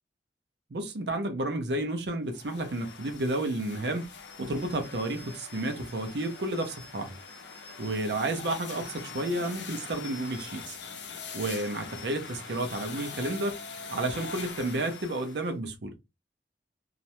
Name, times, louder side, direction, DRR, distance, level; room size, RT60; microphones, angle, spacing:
voice 1, 0.7-4.1 4.4-7.2 7.8-10.8 11.3-13.6 13.9-15.9, right 2 dB, 75° right, 0.6 m, -31 dB
sound 1, 2.3-15.5, left 5 dB, 90° left, 0.6 m, -43 dB
2.4 x 2.1 x 2.8 m
head